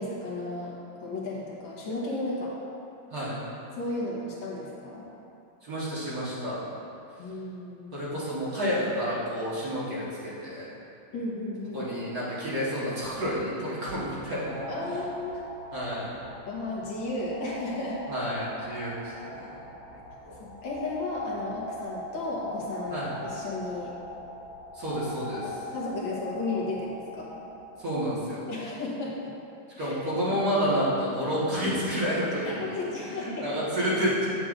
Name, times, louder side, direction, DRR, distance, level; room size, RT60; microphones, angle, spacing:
voice 1, 0.0-2.5 3.7-5.1 7.2-8.1 11.1-11.9 14.7-15.4 16.4-18.0 20.4-23.9 25.4-27.4 28.5-29.2 29.8-30.4 32.4-33.5, left 2 dB, 75° left, -5 dB, 1.9 m, -34 dB
voice 2, 3.1-3.4 5.6-6.6 7.9-10.7 11.7-14.9 15.7-16.2 18.1-19.5 20.3-20.4 22.9-23.1 24.7-25.5 27.8-28.4 29.8-34.3, equal, 50° right, -9 dB, 2.0 m, -30 dB
sound 1, 14.4-27.8, left 1 dB, 75° right, 2.5 m, -41 dB
7.8 x 7.5 x 2.6 m, 2.7 s
omnidirectional pair, 2.2 m